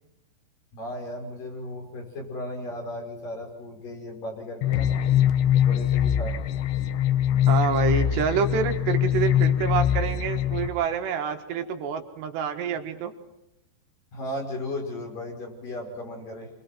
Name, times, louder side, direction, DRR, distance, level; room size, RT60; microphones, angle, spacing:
voice 1, 0.7-4.9 5.5-6.3 14.1-16.5, left 1 dB, 55° left, -1 dB, 7.4 m, -35 dB
sound 1, 4.6-10.7, left 10 dB, 90° left, 3.4 m, -23 dB
voice 2, 7.5-13.1, right 7 dB, 80° right, 5 dB, 3.7 m, -27 dB
29.0 x 24.5 x 4.6 m, 0.90 s
omnidirectional pair, 4.9 m